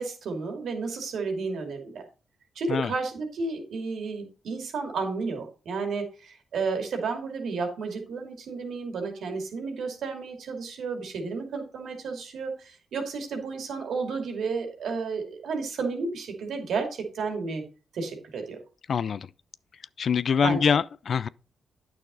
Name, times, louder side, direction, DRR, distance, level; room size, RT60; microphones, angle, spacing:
voice 1, 0.0-2.1 2.6-17.6 17.9-18.6 20.4-20.8, right 4 dB, 75° right, 2.5 m, -32 dB
voice 2, 18.9-19.3 20.0-21.3, left 6 dB, 65° left, 0.4 m, -24 dB
9.2 x 6.2 x 4.0 m
supercardioid pair, 55°, 0 cm